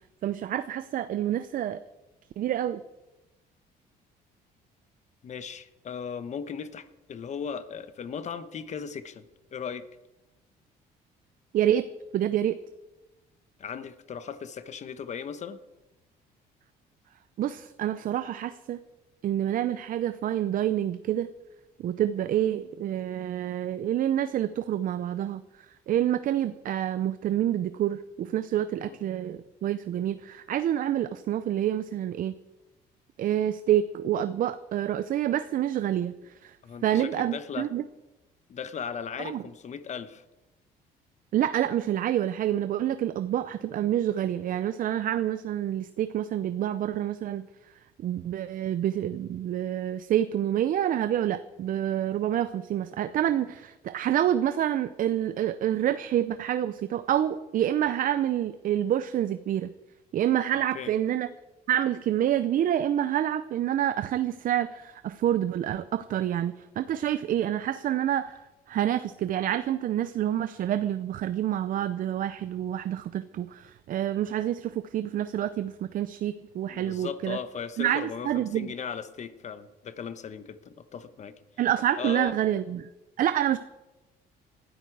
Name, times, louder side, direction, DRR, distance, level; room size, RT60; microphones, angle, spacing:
voice 1, 0.2-1.8 2.4-2.8 11.5-12.6 17.4-18.8 19.2-21.3 21.8-25.4 25.9-32.3 33.2-36.6 36.8-37.8 39.2-39.4 41.3-47.5 48.0-59.7 60.1-61.3 61.7-68.4 68.7-77.4 77.8-78.7 81.6-82.9 83.2-83.6, right 11 dB, 55° right, 13 dB, 0.6 m, -27 dB
voice 2, 5.2-9.9 13.6-15.6 28.8-29.0 36.6-37.7 38.5-40.2 60.7-60.9 76.7-81.3 82.0-82.3, left 7 dB, 45° left, 12 dB, 1.1 m, -37 dB
19.5 x 13.0 x 4.8 m, 1.0 s
cardioid pair, 110°, 17 cm